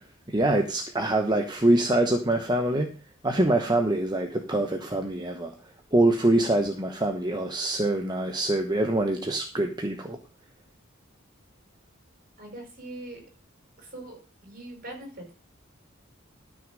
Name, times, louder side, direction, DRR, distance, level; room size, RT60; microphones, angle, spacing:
voice 1, 0.3-3.0 3.2-5.5 5.9-10.2, right 1 dB, 20° right, 4 dB, 1.0 m, -24 dB
voice 2, 12.4-13.3 13.8-15.3, right 1 dB, 45° right, 3 dB, 5.3 m, -42 dB
13.0 x 6.3 x 5.2 m, 0.33 s
head